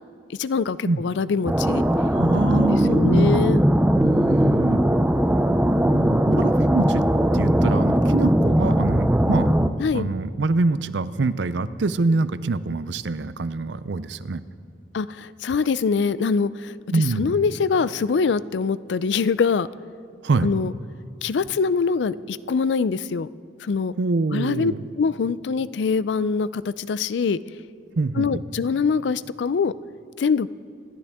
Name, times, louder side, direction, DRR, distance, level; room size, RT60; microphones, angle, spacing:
voice 1, 0.3-1.8 2.5-3.6 9.8-10.1 14.9-19.7 20.4-20.7 21.2-23.3 23.6-23.9 24.3-24.7 25.0-27.4 28.2-29.7 30.2-30.5, left 5 dB, 75° left, 17 dB, 0.4 m, -24 dB
sound 1, 1.4-9.7, equal, 10° right, 0.5 m, -19 dB
voice 2, 2.1-3.6 4.0-4.8 5.8-7.0 7.3-9.5 9.9-14.4 16.9-17.4 20.2-20.5 24.0-24.8 28.0-28.4, right 3 dB, 80° right, 15 dB, 0.5 m, -25 dB
26.5 x 12.0 x 3.6 m, 2.4 s
head